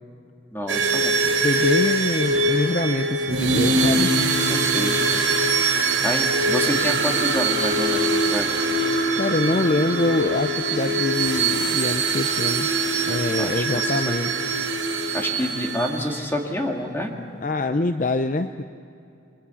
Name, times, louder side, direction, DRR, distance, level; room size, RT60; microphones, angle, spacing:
voice 1, 0.5-1.2 4.4-5.1 6.0-8.5 13.4-14.0 15.1-17.2, left 1 dB, 10° left, 1 dB, 2.3 m, -28 dB
sound 1, 0.7-16.3, right 3 dB, 75° right, 6.1 m, -23 dB
voice 2, 1.4-4.2 9.1-12.7 13.1-14.3 17.4-18.6, left 2 dB, 40° left, 8 dB, 0.6 m, -25 dB
29.0 x 22.5 x 7.1 m, 2.7 s
head